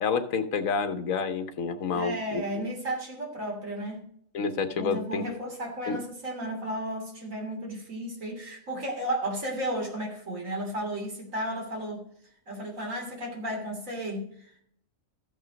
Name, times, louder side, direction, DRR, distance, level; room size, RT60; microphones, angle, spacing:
voice 1, 0.0-2.4 4.3-5.2 5.9-6.0, left 5 dB, 75° left, 9 dB, 1.3 m, -29 dB
voice 2, 1.9-4.0 4.8-12.0 12.5-14.6, right 1 dB, 75° right, -1 dB, 3.4 m, -34 dB
14.5 x 5.5 x 5.1 m, 0.66 s
omnidirectional pair, 1.4 m